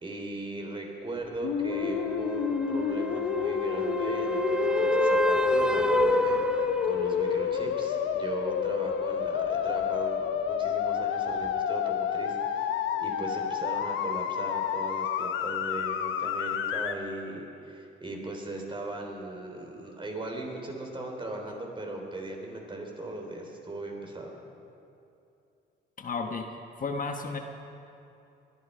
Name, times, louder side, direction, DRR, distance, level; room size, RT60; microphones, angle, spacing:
voice 1, 0.0-24.3, right 2 dB, 25° right, 1 dB, 3.5 m, -38 dB
sound 1, 1.4-16.9, left 7 dB, 80° left, 0.9 m, -29 dB
sound 2, 1.7-7.4 11.4-11.5, right 1 dB, 5° right, 0.9 m, -29 dB
voice 2, 26.0-27.4, left 4 dB, 45° left, 4 dB, 1.3 m, -33 dB
21.5 x 12.0 x 5.5 m, 2.7 s
cardioid pair, 90°, 20 cm